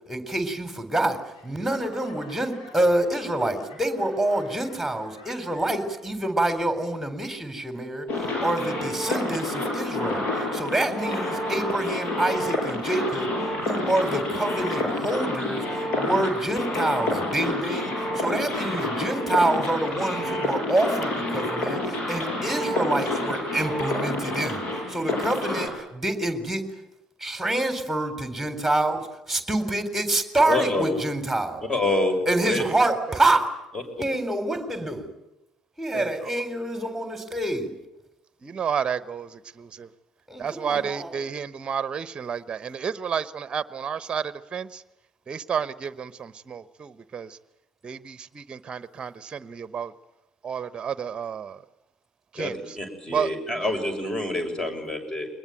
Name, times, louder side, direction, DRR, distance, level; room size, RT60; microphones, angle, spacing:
voice 1, 0.1-26.7 27.2-31.7 32.3-33.5 34.0-35.1 35.8-37.7 40.3-41.2, right 1 dB, 5° right, 7 dB, 4.1 m, -27 dB
Laughter / Clapping / Crowd, 1.3-6.1 6.4-7.0 7.5-7.6, left 2 dB, 80° left, 6.8 m, -48 dB
sound 1, 8.1-25.7, left 2 dB, 55° left, 7.2 m, -28 dB
voice 2, 30.5-31.0 31.7-32.6 52.4-55.3, left 2 dB, 25° left, 7 dB, 6.8 m, -27 dB
voice 3, 35.9-36.3 38.4-39.9 40.4-44.8 45.3-47.4 47.8-49.9 50.4-51.6 52.3-52.8 53.1-53.7, right 7 dB, 35° right, 15 dB, 1.0 m, -31 dB
22.5 x 20.5 x 9.2 m, 0.95 s
hypercardioid pair, 60°, 3 cm